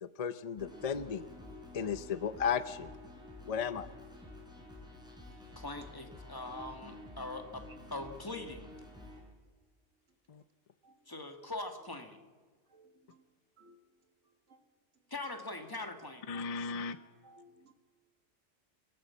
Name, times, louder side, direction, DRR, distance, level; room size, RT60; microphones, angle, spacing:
voice 1, 0.0-1.3 1.7-2.9 3.5-3.9 10.3-10.4 16.3-17.0, left 7 dB, 40° left, 13 dB, 0.6 m, -35 dB
sound 1, 0.6-9.2, left 2 dB, 5° right, 4.8 m, -50 dB
voice 2, 5.5-7.6 7.9-8.7 11.1-12.2 15.1-16.3, left 2 dB, 20° left, 6 dB, 1.7 m, -42 dB
voice 3, 12.7-13.2 13.6-13.8 14.5-14.6 16.3-17.0 17.2-17.7, right 1 dB, 85° right, 6 dB, 2.0 m, -61 dB
25.0 x 13.0 x 8.5 m, 1.5 s
omnidirectional pair, 1.2 m